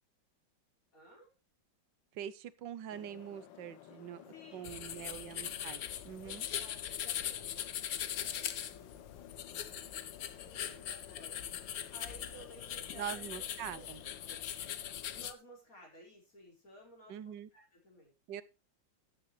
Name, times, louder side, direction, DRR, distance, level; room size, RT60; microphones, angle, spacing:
voice 1, 0.9-1.3 4.3-5.1 6.2-11.6 11.9-13.5 13.7-13.9 14.3-14.4 15.1-18.1, right 1 dB, 45° left, -1 dB, 5.3 m, -57 dB
voice 2, 2.1-4.3 4.5-6.5 12.9-14.0 17.1-17.5 18.3-18.4, right 10 dB, 75° right, 16 dB, 1.4 m, -44 dB
sound 1, 2.9-15.3, left 10 dB, 75° left, 1.6 m, -54 dB
sound 2, 4.6-15.3, left 10 dB, 60° left, 1.1 m, -41 dB
13.0 x 9.7 x 3.2 m, 0.28 s
omnidirectional pair, 2.0 m